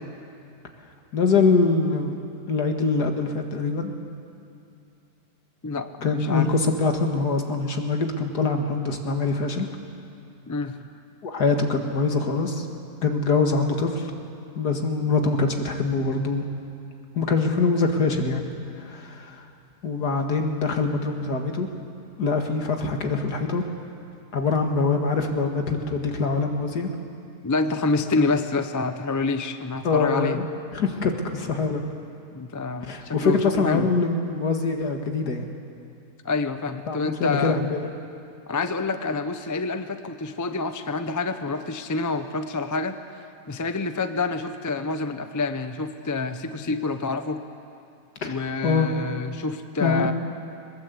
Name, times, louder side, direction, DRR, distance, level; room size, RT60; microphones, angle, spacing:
voice 1, 1.1-2.2 2.5-3.9 6.0-9.7 11.2-12.7 13.0-14.1 14.6-16.4 17.1-18.4 18.8-19.4 19.8-21.7 22.2-23.6 24.3-26.9 29.8-30.4 30.7-31.8 32.8-35.5 36.9-37.9 48.2-48.4 48.6-48.9 49.8-50.1, left 4 dB, 70° left, 4 dB, 2.3 m, -24 dB
voice 2, 5.6-6.5 10.5-10.8 27.4-30.4 32.3-33.9 36.2-37.6 38.5-43.0 43.5-47.4 48.2-50.1, left 3 dB, 25° left, 9 dB, 0.4 m, -27 dB
22.0 x 20.0 x 8.2 m, 2.6 s
omnidirectional pair, 1.8 m